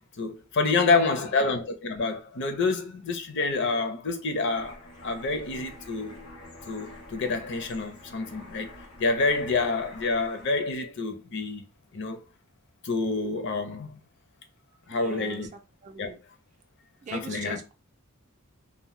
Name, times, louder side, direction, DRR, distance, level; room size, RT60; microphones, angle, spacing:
voice 1, 0.0-6.2 6.7-8.7 9.0-11.6 11.9-12.2 12.8-14.0 14.9-15.5 16.0-16.1 17.1-17.6, left 3 dB, 55° left, 0.6 m, -28 dB
voice 2, 0.7-1.4 14.9-16.2 17.0-17.7, right 3 dB, 35° right, 0.4 m, -42 dB
sound 1, 4.5-10.7, left 1 dB, 90° left, 1.0 m, -47 dB
2.7 x 2.1 x 3.1 m
head